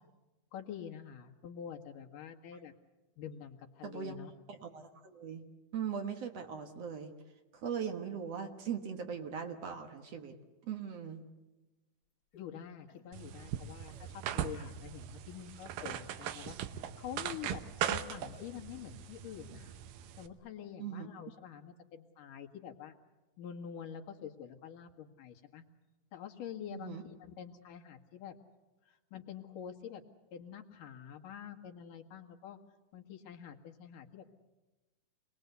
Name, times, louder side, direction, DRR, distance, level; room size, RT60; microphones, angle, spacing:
voice 1, 0.5-2.7 3.2-4.3 12.3-19.8 20.2-22.9 23.4-25.6 26.1-28.3 28.9-30.0 30.3-32.6 32.9-34.3, left 9 dB, 80° left, 3 dB, 3.2 m, -47 dB
voice 2, 3.8-4.2 4.5-5.4 5.7-7.1 7.5-10.3 10.6-11.3 20.8-21.1 26.7-27.0, right 7 dB, 55° right, 6 dB, 2.2 m, -40 dB
sound 1, 12.3-12.5 12.9-13.1 13.9-14.1 14.5-14.8 15.8-16.0 16.4-16.6 18.3-18.5, left 6 dB, 35° left, 1.8 m, -56 dB
sound 2, 13.1-20.3, right 10 dB, 90° right, 2.6 m, -40 dB
27.0 x 20.5 x 8.1 m, 1.1 s
omnidirectional pair, 3.7 m